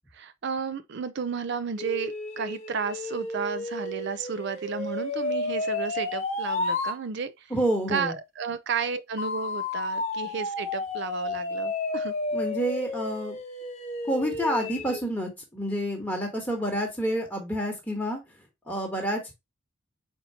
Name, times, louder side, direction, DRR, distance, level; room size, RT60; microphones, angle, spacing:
voice 1, 0.1-7.5 7.9-12.1, right 6 dB, 50° right, 0.4 m, -33 dB
sound 1, 1.8-7.0 9.2-15.0, left 2 dB, 30° left, 0.9 m, -32 dB
voice 2, 7.5-8.1 12.3-13.4 14.1-18.2 18.7-19.3, equal, 10° left, 1.2 m, -28 dB
4.4 x 4.2 x 2.8 m
head